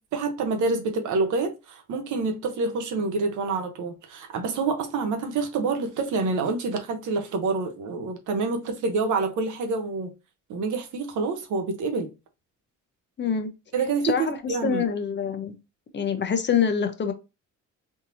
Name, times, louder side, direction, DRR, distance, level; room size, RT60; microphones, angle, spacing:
voice 1, 0.1-10.1 10.5-12.1 13.7-14.8, right 4 dB, 75° right, 0.9 m, -27 dB
voice 2, 13.2-13.5 14.0-15.5 15.9-17.1, left 7 dB, 40° left, 0.7 m, -25 dB
3.6 x 2.8 x 2.6 m
cardioid pair, 90°, 30 cm